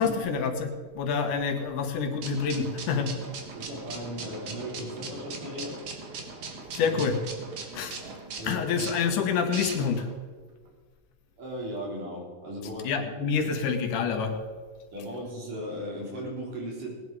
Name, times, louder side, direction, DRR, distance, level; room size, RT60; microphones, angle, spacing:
voice 1, 0.0-3.1 6.7-7.2 7.7-8.0 8.4-10.1 12.8-14.4, left 6 dB, 75° left, 6 dB, 2.7 m, -27 dB
sound 1, 2.2-10.1, right 4 dB, 55° right, 2.6 m, -40 dB
voice 2, 3.5-5.8 6.8-7.0 8.4-8.7 11.4-12.9 14.9-17.0, equal, 75° right, -3 dB, 5.5 m, -37 dB
19.0 x 10.5 x 4.8 m, 1.5 s
omnidirectional pair, 3.7 m